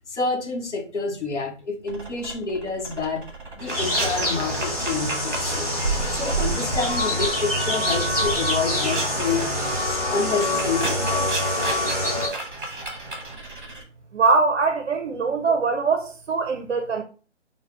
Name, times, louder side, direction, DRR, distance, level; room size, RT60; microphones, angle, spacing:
voice 1, 0.1-3.3 3.6-9.5 9.8-11.6, left 4 dB, 70° left, 0.8 m, -28 dB
sound 1, 1.9-7.3 7.6-13.8, right 3 dB, 40° right, 0.9 m, -32 dB
sound 2, 3.7-12.3, left 1 dB, 30° left, 1.2 m, -25 dB
voice 2, 14.1-17.0, right 4 dB, 65° right, 0.5 m, -22 dB
3.4 x 2.1 x 3.4 m
hypercardioid pair, 170°, 36 cm